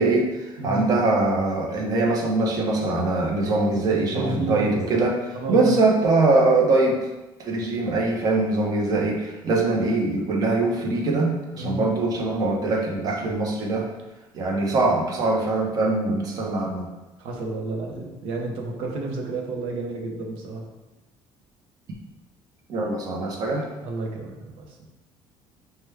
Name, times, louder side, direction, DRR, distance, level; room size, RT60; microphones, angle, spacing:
voice 1, 0.0-5.1 5.5-7.0 7.4-13.9 14.3-16.9 22.7-23.7, right 2 dB, 40° right, -1 dB, 0.8 m, -22 dB
voice 2, 3.7-5.0 5.3-5.7 11.5-11.8 17.2-20.6 23.5-24.9, right 2 dB, 75° right, 1 dB, 0.8 m, -32 dB
4.8 x 2.3 x 3.3 m, 1.0 s
cardioid pair, 150°, 10 cm